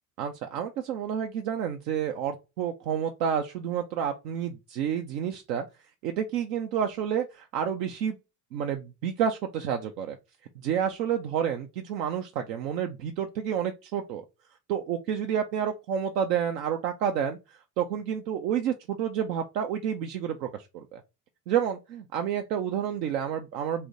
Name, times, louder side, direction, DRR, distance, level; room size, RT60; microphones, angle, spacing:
voice 1, 0.2-5.7 6.0-8.2 8.5-10.2 10.6-14.2 14.7-21.0 21.5-23.9, right 8 dB, 80° right, 0.6 m, -29 dB
3.3 x 2.7 x 4.0 m
hypercardioid pair, 60°, 48 cm